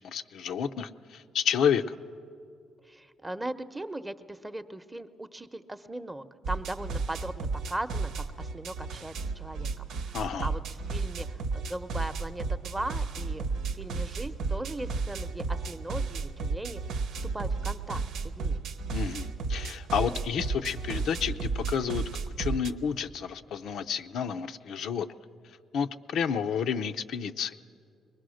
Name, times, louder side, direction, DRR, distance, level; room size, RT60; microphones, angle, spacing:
voice 1, 0.0-2.0 10.1-10.5 18.9-25.1 25.7-27.5, left 7 dB, 75° left, 8 dB, 0.6 m, -30 dB
voice 2, 2.9-13.5 13.7-17.0 17.3-18.0 18.4-18.6, right 1 dB, 15° right, 10 dB, 0.8 m, -38 dB
sound 1, 6.4-22.7, right 4 dB, 85° right, 0.9 m, -33 dB
22.5 x 20.0 x 6.4 m, 2.4 s
cardioid pair, 90°, 0 cm